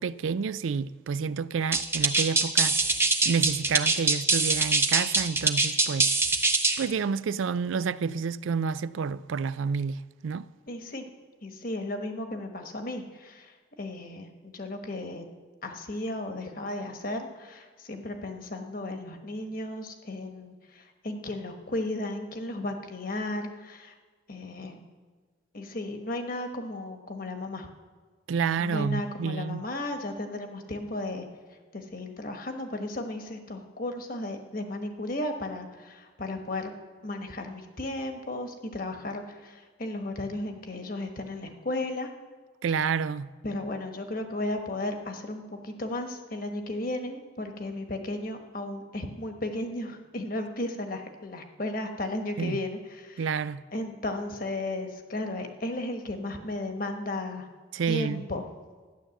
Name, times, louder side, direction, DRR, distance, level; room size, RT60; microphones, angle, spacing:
voice 1, 0.0-2.8 3.2-6.1 6.8-10.5 28.3-29.6 42.6-43.3 52.4-52.6 53.2-53.6 57.7-58.2, right 6 dB, 80° right, 0.4 m, -29 dB
sound 1, 1.7-6.9, right 3 dB, 10° right, 0.7 m, -23 dB
voice 2, 10.7-11.0 11.4-15.3 15.6-23.9 24.3-24.8 25.5-27.7 28.6-31.3 31.7-36.7 37.0-42.1 43.4-53.3 53.7-57.5 57.9-58.4, left 1 dB, 45° left, 1.2 m, -34 dB
12.5 x 10.0 x 7.1 m
head